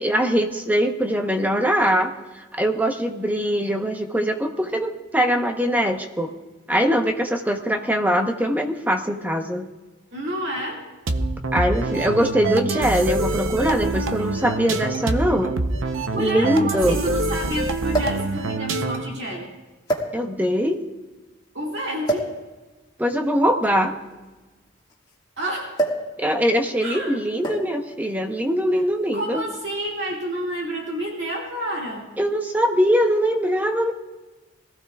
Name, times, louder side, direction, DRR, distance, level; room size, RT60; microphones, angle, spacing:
voice 1, 0.0-6.3 6.7-9.7 11.5-15.6 16.2-17.0 20.1-20.8 23.0-24.0 26.2-29.4 32.2-33.9, equal, 10° right, 4 dB, 0.9 m, -22 dB
voice 2, 10.1-10.8 15.9-19.5 21.5-22.3 25.4-25.7 26.8-27.1 29.1-32.1, right 1 dB, 60° right, -2 dB, 2.1 m, -29 dB
sound 1, 11.1-19.2, right 2 dB, 80° right, 0.8 m, -25 dB
sound 2, 15.4-15.5 15.7-15.8 17.9-18.3 19.1-19.3 19.9-20.6 22.0-22.4 23.5-25.1 25.8-26.1 26.4-26.7 27.4-27.8 28.8-29.0, right 2 dB, 20° left, 1.8 m, -27 dB
21.0 x 15.0 x 2.4 m, 1.2 s
head